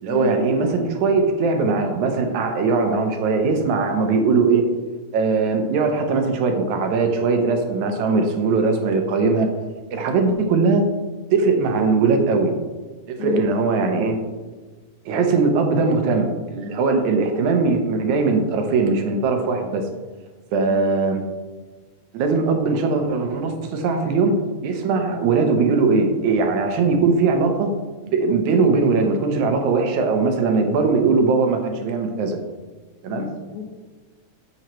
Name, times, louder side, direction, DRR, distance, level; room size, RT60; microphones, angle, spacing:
voice 1, 0.0-4.6 5.1-9.5 9.9-10.8 11.3-12.6 13.1-14.2 15.1-19.8 20.5-21.2 22.1-24.4 24.6-27.7 28.1-32.4 33.0-33.3, right 4 dB, 75° right, 4 dB, 2.0 m, -20 dB
voice 2, 13.2-13.5 16.9-17.2 20.7-20.8 33.1-33.6, left 9 dB, 75° left, 2 dB, 2.4 m, -32 dB
8.8 x 7.1 x 3.0 m, 1.3 s
omnidirectional pair, 3.6 m